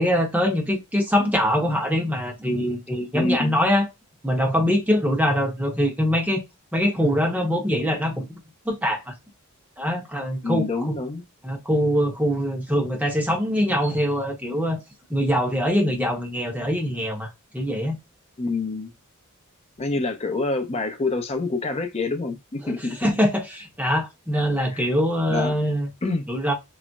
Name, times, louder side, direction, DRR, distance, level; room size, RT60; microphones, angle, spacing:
voice 1, 0.0-3.9 4.2-6.4 6.7-8.3 8.6-9.1 9.8-10.9 11.4-14.8 15.1-18.0 22.6-25.9 26.3-26.5, equal, 5° right, 0.8 m, -23 dB
voice 2, 3.1-3.5 10.4-11.2 18.4-18.9 19.8-23.0 24.7-24.8 25.3-25.5 26.0-26.3, left 3 dB, 30° left, 0.5 m, -26 dB
3.9 x 2.0 x 2.2 m
head